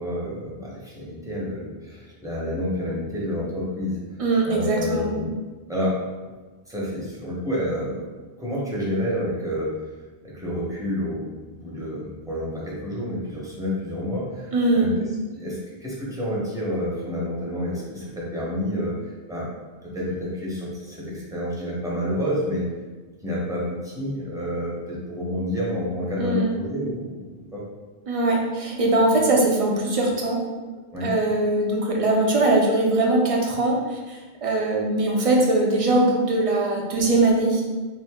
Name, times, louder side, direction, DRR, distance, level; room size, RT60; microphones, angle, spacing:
voice 1, 0.0-4.0 4.4-5.3 5.7-6.0 6.7-8.0 8.4-9.7 10.2-14.9 15.4-19.0 19.3-19.5 19.8-22.7 23.2-27.6 30.9-31.1, left 1 dB, 5° right, -7 dB, 0.8 m, -29 dB
voice 2, 4.2-5.1 14.5-14.9 26.2-26.5 28.1-30.4 31.0-37.6, right 2 dB, 45° right, -1 dB, 0.5 m, -21 dB
2.9 x 2.6 x 3.5 m, 1.3 s
omnidirectional pair, 1.0 m